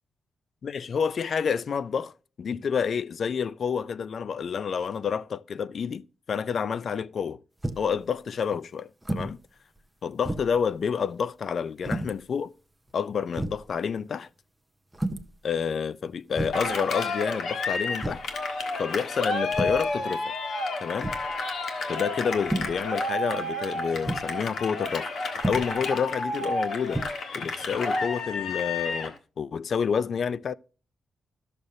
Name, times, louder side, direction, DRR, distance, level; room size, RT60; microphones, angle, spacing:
voice 1, 0.6-2.1 2.4-7.4 7.8-9.4 10.0-12.5 12.9-14.3 15.4-18.2 18.8-20.3 20.8-21.1 21.9-25.1 25.4-27.0 27.3-30.5, left 6 dB, 45° left, 0.3 m, -29 dB
sound 1, 7.6-8.0 9.0-9.4 9.8-9.9 10.2-10.6 11.8-12.2 12.9-13.0 13.3-13.7 14.9-15.3 16.3-16.7 18.0-18.3 19.5-19.9 21.0-21.4 22.4-22.8 24.0-24.3 25.4-25.8 26.9-27.1, right 1 dB, 5° right, 0.6 m, -31 dB
Cheering, 16.5-29.2, left 2 dB, 65° left, 1.4 m, -31 dB
13.0 x 6.6 x 2.7 m
wide cardioid pair, 155°, 0 cm